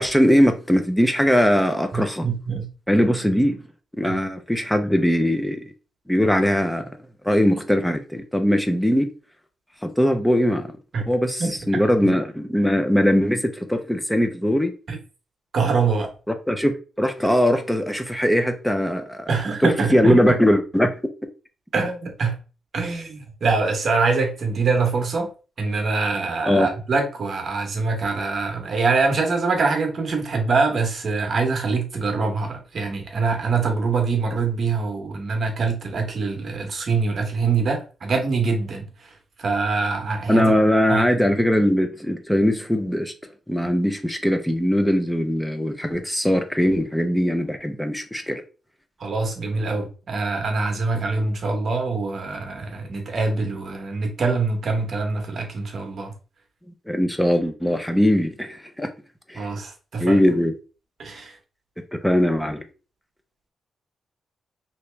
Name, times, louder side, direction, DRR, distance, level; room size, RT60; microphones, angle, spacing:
voice 1, 0.0-2.3 2.9-3.6 4.0-5.6 6.1-6.8 7.2-9.1 9.8-10.7 11.1-14.7 16.5-19.3 19.9-20.9 26.5-26.7 40.3-43.1 43.5-48.4 56.9-58.9 59.3-59.5 60.0-60.5 61.9-62.6, equal, 5° left, 0.4 m, -20 dB
voice 2, 1.9-2.7 4.0-4.2 10.9-11.0 11.4-11.5 14.9-15.0 15.5-16.1 19.3-20.2 21.7-22.4 22.7-25.3 25.6-40.6 40.9-41.1 49.0-56.1 59.3-60.2 61.0-61.4, right 4 dB, 45° right, 0.9 m, -24 dB
2.9 x 2.8 x 3.2 m
wide cardioid pair, 150°, 0 cm